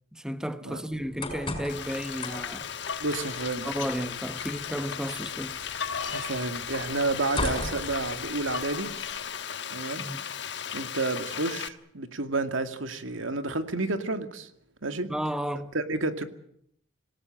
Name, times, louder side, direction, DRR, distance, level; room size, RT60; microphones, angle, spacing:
voice 1, 0.1-2.7 3.6-5.6 10.0-10.2 15.1-15.7, equal, 5° right, 0.9 m, -33 dB
sound 1, 0.9-8.7, left 2 dB, 25° left, 5.5 m, -39 dB
Frying (food), 1.7-11.7, left 8 dB, 60° left, 1.2 m, -36 dB
sound 2, 2.1-2.3 2.7-4.8 5.4-9.2, left 5 dB, 75° left, 3.7 m, -39 dB
voice 2, 3.0-3.7 6.1-8.9 9.7-10.1 10.7-14.5 14.8-15.1 15.7-16.2, right 2 dB, 80° right, 2.2 m, -30 dB
27.0 x 18.0 x 8.8 m
head